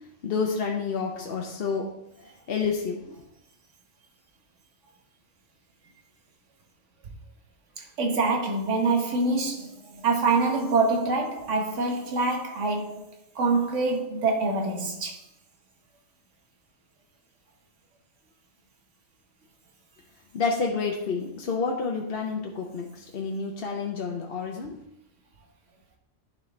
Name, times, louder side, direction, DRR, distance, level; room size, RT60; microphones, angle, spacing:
voice 1, 0.2-1.9 2.5-3.2 20.3-24.8, left 5 dB, 55° left, 0.9 m, -29 dB
voice 2, 7.8-13.1 13.3-15.2, right 3 dB, 75° right, 1.4 m, -25 dB
11.0 x 4.3 x 3.2 m
omnidirectional pair, 1.3 m